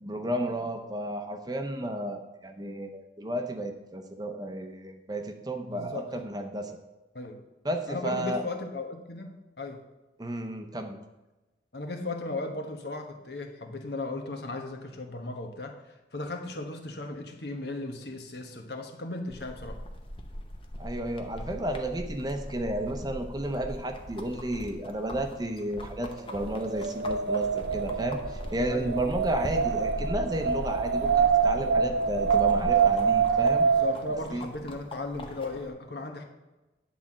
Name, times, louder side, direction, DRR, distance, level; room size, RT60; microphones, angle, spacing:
voice 1, 0.0-6.8 7.6-8.4 10.2-11.0 20.8-33.7 34.3-34.5, right 1 dB, 25° right, 6 dB, 0.7 m, -32 dB
voice 2, 5.7-6.1 7.1-7.4 7.9-9.8 11.7-19.8 28.7-29.1 33.6-36.2, left 2 dB, 70° left, 4 dB, 1.2 m, -36 dB
sound 1, 19.3-35.7, equal, 30° left, 0.9 m, -40 dB
Wind, 26.2-34.2, right 6 dB, 70° right, 0.4 m, -25 dB
9.7 x 4.2 x 7.3 m, 1.1 s
head